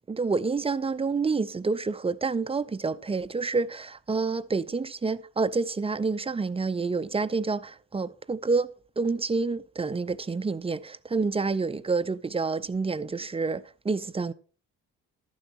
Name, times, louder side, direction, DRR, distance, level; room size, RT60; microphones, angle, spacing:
voice 1, 0.1-8.7 9.0-14.3, right 4 dB, 15° right, 0.5 m, -28 dB
11.5 x 9.1 x 3.1 m
hypercardioid pair, 50°, 36 cm